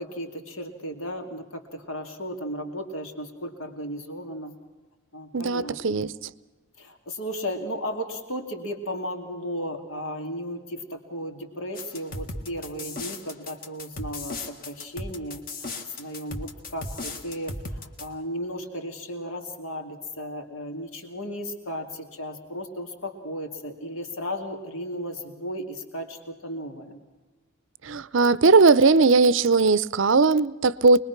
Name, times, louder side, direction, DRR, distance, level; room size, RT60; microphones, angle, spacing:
voice 1, 0.0-4.5 5.1-6.1 6.8-15.7 16.0-27.0, equal, 70° left, 2.6 m, -35 dB
voice 2, 5.3-6.1 27.8-31.0, right 4 dB, 60° right, 0.6 m, -19 dB
sound 1, 11.7-18.1, left 2 dB, 40° left, 1.8 m, -36 dB
24.5 x 21.0 x 5.9 m
head